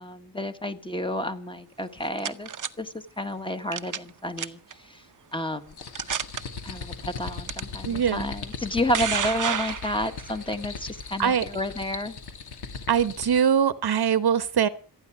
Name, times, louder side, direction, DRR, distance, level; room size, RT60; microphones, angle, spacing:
voice 1, 0.0-2.5 2.8-4.6 4.9-5.0 5.3-5.7 6.6-12.2, left 1 dB, 10° left, 7 dB, 1.4 m, -30 dB
sound 1, 1.8-2.7 3.7-4.1 4.4-4.7 5.4-5.5 5.9-6.4 7.5-7.6 8.5-10.3, right 8 dB, 50° right, 0.9 m, -30 dB
sound 2, 5.7-13.5, left 5 dB, 70° left, 2.5 m, -39 dB
voice 2, 7.8-8.3 11.2-11.4 12.9-14.7, right 8 dB, 65° right, 13 dB, 1.2 m, -22 dB
27.0 x 9.8 x 4.7 m, 0.39 s
wide cardioid pair, 155°, 41 cm